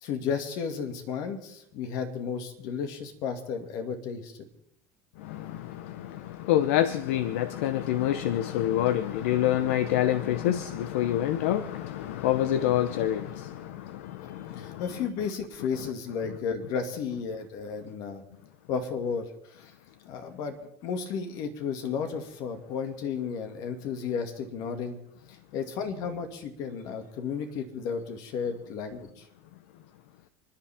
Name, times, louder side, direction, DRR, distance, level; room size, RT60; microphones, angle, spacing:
voice 1, 0.0-4.5 14.5-18.2 18.7-19.7 20.1-20.6 20.8-25.0 25.3-29.3, left 6 dB, 65° left, 2.2 m, -33 dB
voice 2, 5.2-14.8, left 12 dB, 85° left, 0.7 m, -27 dB
29.5 x 10.5 x 3.6 m
supercardioid pair, 100°, 7 cm